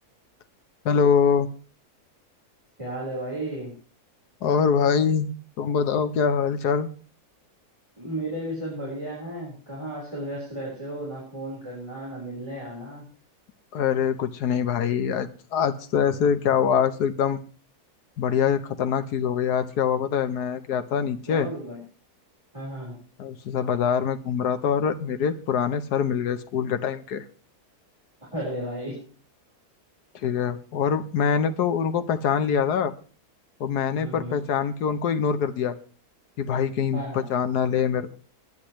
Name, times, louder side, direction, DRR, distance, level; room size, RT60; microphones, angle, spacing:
voice 1, 0.8-1.5 4.4-5.3 5.6-6.9 13.7-17.4 18.2-21.5 23.2-27.2 30.1-32.9 33.6-35.8 36.4-38.1, left 7 dB, 80° left, 10 dB, 1.5 m, -24 dB
voice 2, 2.8-3.8 8.0-13.0 21.3-21.8 22.5-23.0 28.3-29.0 34.0-34.4 36.9-37.2, right 1 dB, 20° right, -5 dB, 4.5 m, -34 dB
20.5 x 10.0 x 3.1 m, 0.38 s
omnidirectional pair, 1.7 m